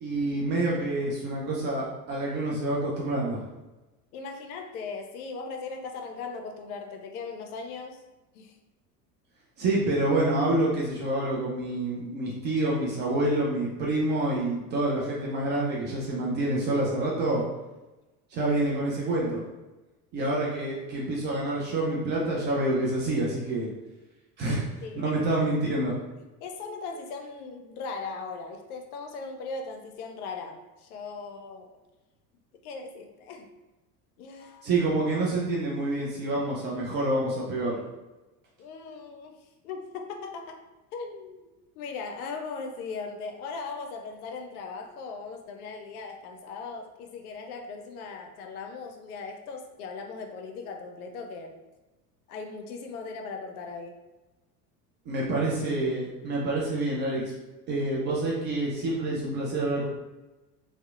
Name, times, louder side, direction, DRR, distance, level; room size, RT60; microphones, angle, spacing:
voice 1, 0.0-3.4 9.6-17.5 18.3-19.4 20.1-23.7 24.4-24.7 24.9-26.0 34.6-37.8 55.1-57.2 57.7-59.9, right 2 dB, 25° right, -4 dB, 0.3 m, -27 dB
voice 2, 4.1-8.0 8.3-8.6 24.5-25.2 26.4-31.8 32.6-33.5 34.2-34.7 38.6-40.6 40.9-41.5 41.8-51.6 52.3-53.9, left 4 dB, 65° left, 4 dB, 0.5 m, -39 dB
2.7 x 2.1 x 2.3 m, 1.1 s
figure-of-eight pair, 70°, 50 cm